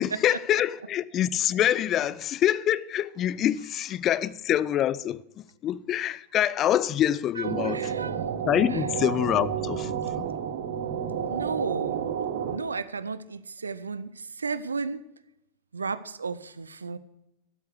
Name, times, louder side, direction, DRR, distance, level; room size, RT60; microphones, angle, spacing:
voice 1, 0.0-7.9 8.5-9.9 10.2-10.3, left 11 dB, 30° left, 0.4 m, -26 dB
sound 1, 7.4-12.6, right 8 dB, 55° right, 1.0 m, -30 dB
voice 2, 7.4-8.2 8.7-8.8 11.3-12.1 12.5-15.0 15.7-17.0, right 4 dB, 75° right, 0.5 m, -34 dB
12.5 x 8.2 x 6.5 m
figure-of-eight pair, 90°, 0 cm